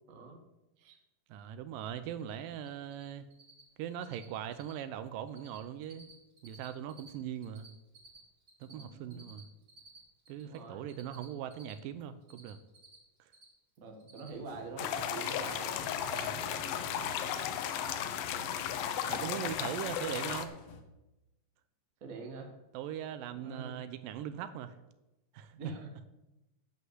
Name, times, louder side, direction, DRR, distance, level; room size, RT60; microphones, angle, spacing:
voice 1, 0.1-0.4 0.8-1.0 8.7-9.2 10.4-10.9 13.8-16.8 18.4-18.5 19.3-19.4 22.0-22.5 23.4-23.8 25.5-25.9, right 3 dB, 55° right, 3 dB, 0.9 m, -46 dB
voice 2, 1.3-3.3 3.8-6.1 6.4-7.7 8.6-9.5 10.3-12.6 13.2-13.3 16.2-16.4 19.1-20.5 22.7-24.7 25.3-25.5, right 10 dB, 80° right, 12 dB, 2.2 m, -40 dB
Cricket, 2.2-2.3 2.6-3.0 3.3-3.6 3.9-4.3 4.5-4.8 5.1-5.6 5.8-7.1 7.4-10.6 10.9-13.5 13.8-14.6 14.8-15.7 16.0-16.3 16.6-16.9, right 2 dB, 30° right, 2.4 m, -56 dB
sound 1, 14.3-20.8, left 2 dB, 65° left, 1.5 m, -51 dB
sound 2, 14.8-20.5, left 9 dB, 90° left, 2.6 m, -35 dB
10.0 x 5.5 x 7.8 m, 0.97 s
omnidirectional pair, 4.1 m